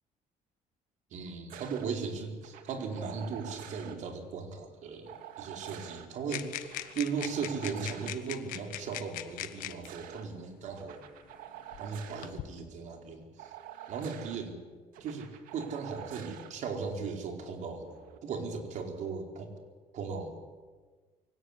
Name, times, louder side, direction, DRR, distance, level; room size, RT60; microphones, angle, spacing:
voice 1, 1.1-11.0 11.8-13.5 13.9-14.6 15.0-17.9 18.2-19.5 19.9-20.3, right 5 dB, 60° right, 3 dB, 4.5 m, -37 dB
sound 1, 1.5-1.9 2.4-4.0 5.1-6.1 6.6-8.2 9.5-10.2 10.8-12.3 13.4-14.4 14.9-16.5 17.8-18.2, right 11 dB, 80° right, 2.3 m, -47 dB
sound 2, 6.3-9.9 10.9-11.0 11.7-12.5, left 14 dB, 75° left, 1.3 m, -41 dB
23.5 x 17.5 x 9.9 m, 1.4 s
cardioid pair, 140°, 14 cm